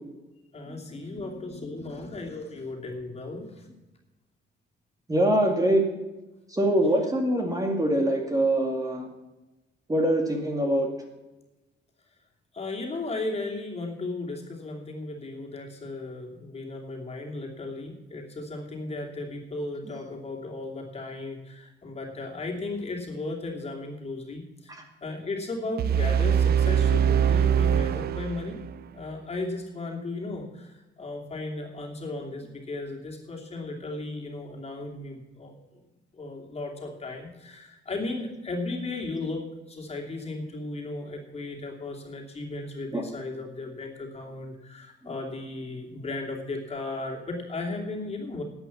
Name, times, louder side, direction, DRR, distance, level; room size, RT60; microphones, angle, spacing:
voice 1, 0.5-3.7 12.5-24.8 25.0-28.6 28.9-35.5 36.1-48.4, left 2 dB, 30° left, 0 dB, 2.8 m, -35 dB
voice 2, 5.1-5.8 6.5-9.1 9.9-10.9 24.7-24.8 42.9-43.0 45.0-45.1, right 1 dB, 15° right, 2 dB, 2.3 m, -24 dB
sound 1, 25.8-28.8, right 8 dB, 50° right, 0.4 m, -23 dB
11.0 x 8.3 x 7.2 m, 1.1 s
cardioid pair, 90°, 20 cm